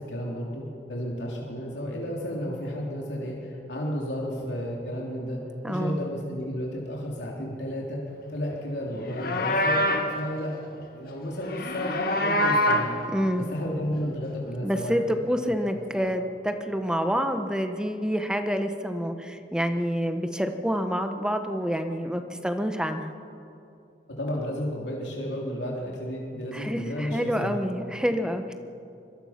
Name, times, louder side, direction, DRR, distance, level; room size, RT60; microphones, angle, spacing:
voice 1, 0.0-5.4 5.7-8.0 8.3-12.9 13.4-15.2 15.9-16.1 24.2-27.6, equal, 80° left, -3 dB, 3.2 m, -32 dB
voice 2, 5.6-6.1 13.1-13.5 14.6-23.1 26.5-28.5, equal, 5° right, 7 dB, 1.1 m, -28 dB
Livestock farm animals working animals, 9.0-10.1 11.4-13.0, left 1 dB, 55° left, 2.0 m, -25 dB
24.0 x 22.5 x 5.9 m, 2.6 s
head